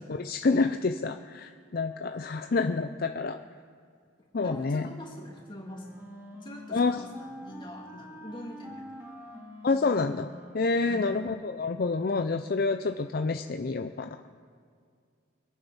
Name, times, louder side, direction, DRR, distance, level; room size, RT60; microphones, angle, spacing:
voice 1, 0.0-3.4 4.3-4.9 6.7-7.0 9.6-14.1, left 3 dB, 50° left, 7 dB, 0.5 m, -28 dB
voice 2, 4.4-6.0 6.3-9.1 10.8-11.2, equal, 25° left, -2 dB, 2.9 m, -44 dB
Wind instrument woodwind instrument, 5.2-11.3, equal, 15° right, 2.6 m, -46 dB
25.0 x 9.1 x 5.6 m, 2.2 s
head